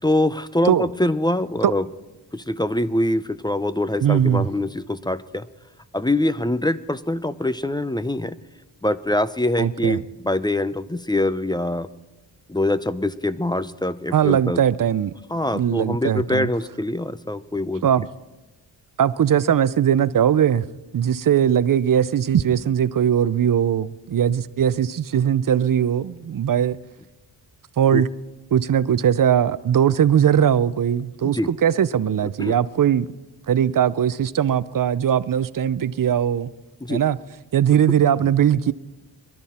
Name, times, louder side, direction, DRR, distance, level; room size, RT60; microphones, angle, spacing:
voice 1, 0.0-1.9 2.3-5.5 5.9-8.4 8.8-11.9 12.5-14.6 15.3-18.1 27.9-28.0 31.2-31.5 32.4-32.6 36.8-37.0, left 1 dB, 10° left, 0.5 m, -24 dB
voice 2, 4.0-4.5 9.6-10.0 14.1-15.1 15.5-16.5 17.8-18.1 19.0-20.6 20.9-26.8 27.8-28.1 28.5-33.1 33.5-36.5 36.9-37.2 37.5-38.7, right 9 dB, 45° right, 0.6 m, -20 dB
23.5 x 12.0 x 4.3 m
cardioid pair, 70°, 45 cm